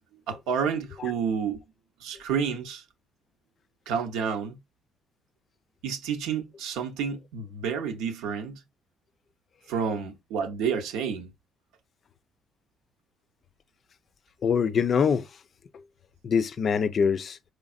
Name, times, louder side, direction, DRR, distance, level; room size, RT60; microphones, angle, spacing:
voice 1, 0.3-1.6 2.0-2.8 3.9-4.6 5.8-8.6 9.7-11.3, right 6 dB, 85° right, 0.7 m, -30 dB
voice 2, 14.4-15.3 16.2-17.4, left 6 dB, 55° left, 0.4 m, -24 dB
4.1 x 3.2 x 2.4 m
supercardioid pair, 65°, 0 cm